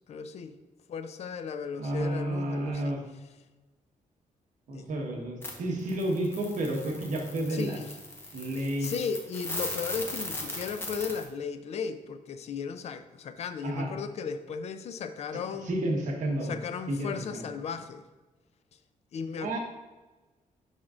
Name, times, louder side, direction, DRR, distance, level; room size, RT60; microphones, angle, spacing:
voice 1, 0.1-0.5 0.9-3.0 4.7-4.8 7.5-8.0 8.8-15.8 16.4-18.0 19.1-19.5, left 6 dB, 50° left, 10 dB, 0.4 m, -36 dB
voice 2, 1.8-3.0 4.7-7.8 8.3-8.9 13.6-13.9 15.7-16.6 16.9-17.5 19.4-19.6, right 1 dB, 65° right, 1 dB, 1.2 m, -31 dB
sound 1, 5.4-5.5 5.8-11.2, left 2 dB, 15° left, 0.9 m, -38 dB
10.5 x 3.6 x 2.5 m, 1.2 s
cardioid pair, 150°, 14 cm